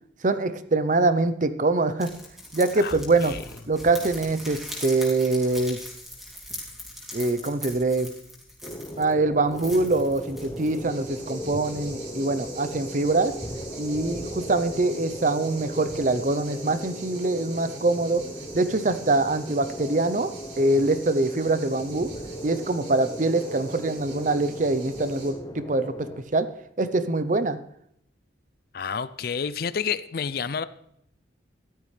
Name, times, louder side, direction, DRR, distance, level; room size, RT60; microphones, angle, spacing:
voice 1, 0.2-2.1 2.5-3.3 3.7-5.8 7.1-8.1 9.0-13.3 13.8-18.2 18.5-22.1 22.4-26.1 26.3-26.5 26.8-27.6, right 2 dB, 40° right, 12 dB, 0.7 m, -24 dB
sound 1, 2.0-9.1 9.5-10.8, left 1 dB, ahead, 2.5 m, -40 dB
voice 2, 2.8-3.4 28.7-30.6, left 6 dB, 50° left, 16 dB, 0.4 m, -30 dB
sound 2, 8.6-26.2, equal, 20° left, 0.9 m, -38 dB
sound 3, 10.8-25.3, right 4 dB, 75° right, 4.0 m, -45 dB
14.0 x 12.0 x 3.3 m, 0.74 s
head